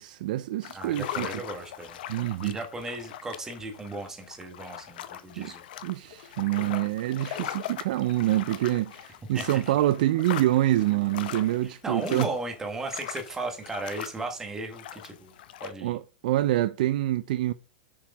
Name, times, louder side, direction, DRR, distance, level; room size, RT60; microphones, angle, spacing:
voice 1, 0.0-1.3 2.1-2.6 5.4-5.5 5.8-12.3 15.8-17.5, right 14 dB, 45° right, 0.4 m, -26 dB
sound 1, 0.6-15.7, left 11 dB, 55° left, 0.8 m, -40 dB
voice 2, 0.7-2.0 2.4-5.6 9.3-9.8 11.6-15.3 15.6-16.0, right 2 dB, 10° right, 1.3 m, -36 dB
7.2 x 4.7 x 5.2 m
supercardioid pair, 175°, 6 cm